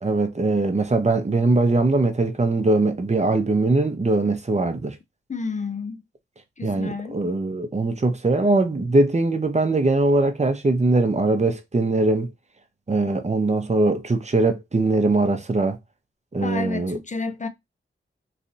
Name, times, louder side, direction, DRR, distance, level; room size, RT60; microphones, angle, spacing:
voice 1, 0.0-5.0 6.6-12.3 12.9-15.8 16.3-17.0, right 2 dB, 35° right, 0.8 m, -21 dB
voice 2, 5.3-6.0 6.6-7.2 16.4-17.5, left 4 dB, 35° left, 0.5 m, -30 dB
3.2 x 2.6 x 2.6 m
cardioid pair, 55°, 21 cm